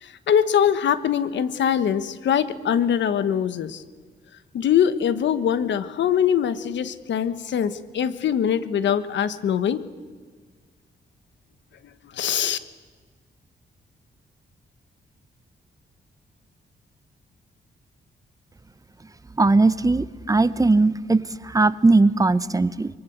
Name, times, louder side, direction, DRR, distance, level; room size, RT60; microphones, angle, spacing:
voice 1, 0.0-3.8 4.5-9.8 12.1-12.6, left 8 dB, 85° left, 13 dB, 1.2 m, -22 dB
voice 2, 19.4-22.9, right 3 dB, 20° right, 15 dB, 0.8 m, -19 dB
23.5 x 23.5 x 8.0 m, 1.5 s
cardioid pair, 110°, 18 cm